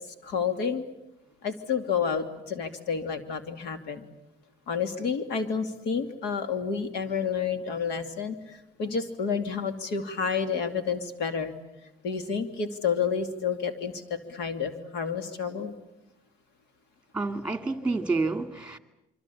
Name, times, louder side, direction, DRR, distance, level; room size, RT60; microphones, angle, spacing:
voice 1, 0.2-0.8 1.4-4.0 4.7-11.5 12.0-15.7, left 6 dB, 85° left, 2.8 m, -30 dB
voice 2, 17.1-18.8, right 3 dB, 5° right, 2.2 m, -29 dB
26.0 x 24.5 x 8.6 m
cardioid pair, 110°, 17 cm